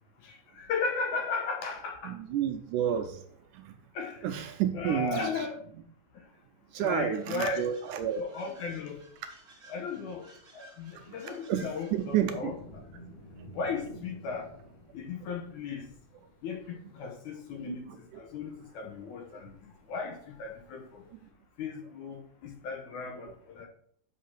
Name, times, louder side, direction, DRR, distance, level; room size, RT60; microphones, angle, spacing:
voice 1, 0.2-2.1 3.9-4.3 4.7-5.6 6.8-7.6 7.9-9.0 9.7-10.3 10.5-12.8 13.5-14.5 14.9-15.9 16.4-17.9 18.1-21.0 21.6-23.7, left 4 dB, 70° left, 3 dB, 2.3 m, -36 dB
voice 2, 2.0-3.3 3.5-3.8 4.2-5.5 6.7-8.2 10.9-11.0 11.5-12.5 17.7-17.8 19.3-19.4 21.1-21.2 23.2-23.3, right 10 dB, 80° right, 6 dB, 2.0 m, -30 dB
sound 1, 7.2-12.3, right 1 dB, 55° right, 0.7 m, -56 dB
sound 2, 12.0-21.3, left 1 dB, 45° left, 2.9 m, -52 dB
6.2 x 5.6 x 5.8 m, 0.62 s
omnidirectional pair, 4.0 m